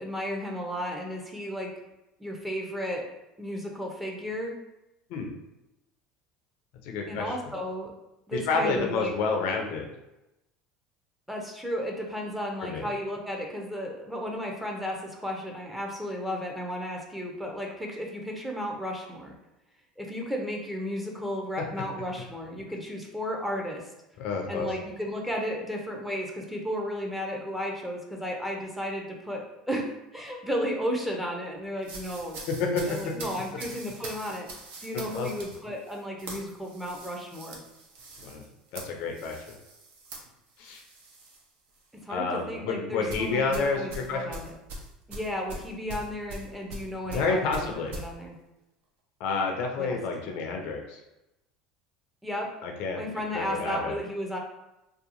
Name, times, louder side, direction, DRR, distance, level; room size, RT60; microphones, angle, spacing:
voice 1, 0.0-1.7 2.2-3.0 3.4-4.5 7.1-7.9 8.3-9.1 11.3-19.3 20.0-23.9 24.5-32.4 32.8-34.5 34.8-37.6 42.0-44.5 45.1-48.4 49.8-50.0 52.2-52.5 52.9-54.4, equal, 5° right, 0 dB, 0.6 m, -34 dB
voice 2, 6.8-7.3 8.3-9.9 12.6-12.9 24.2-24.7 32.5-33.1 35.1-35.3 38.2-38.4 38.7-39.4 40.6-40.8 42.1-44.4 47.1-47.9 49.2-51.0 52.6-53.0 53.3-54.0, left 4 dB, 65° left, 2 dB, 0.4 m, -29 dB
sound 1, 31.8-41.4 41.8-42.0 43.1-48.1, right 2 dB, 60° right, 0.6 m, -42 dB
2.7 x 2.3 x 2.5 m, 0.92 s
hypercardioid pair, 75°, 3 cm